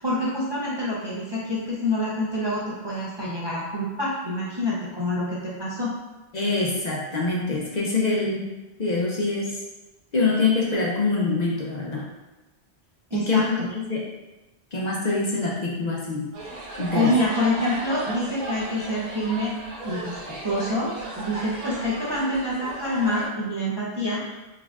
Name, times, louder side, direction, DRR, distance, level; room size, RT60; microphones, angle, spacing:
voice 1, 0.0-5.9 13.1-13.7 16.9-19.5 19.8-20.2 20.4-24.2, left 1 dB, 40° right, -7 dB, 0.4 m, -26 dB
voice 2, 6.3-8.5 8.8-9.6 10.1-12.1 13.3-13.4 13.9-14.0 14.7-16.3 16.8-17.1, left 3 dB, 55° left, -3 dB, 0.6 m, -24 dB
sound 1, 16.3-23.2, right 2 dB, 70° right, 1.1 m, -35 dB
4.1 x 2.5 x 2.3 m, 1.1 s
omnidirectional pair, 1.0 m